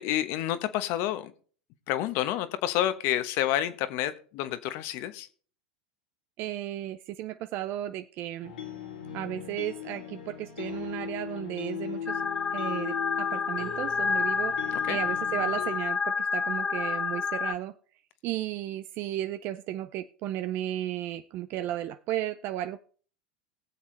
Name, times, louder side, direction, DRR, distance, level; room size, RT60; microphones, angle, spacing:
voice 1, 0.0-1.3 1.9-5.3 14.9-15.0, left 12 dB, 55° left, 12 dB, 1.1 m, -29 dB
voice 2, 6.4-8.5 9.1-12.2 12.5-17.7 18.2-22.8, right 13 dB, 50° right, 11 dB, 0.6 m, -34 dB
sound 1, 8.4-15.8, left 8 dB, 90° left, 2.5 m, -39 dB
sound 2, 12.1-17.5, left 5 dB, 20° left, 0.4 m, -29 dB
20.0 x 7.3 x 3.3 m, 0.43 s
hypercardioid pair, 100°, 5 cm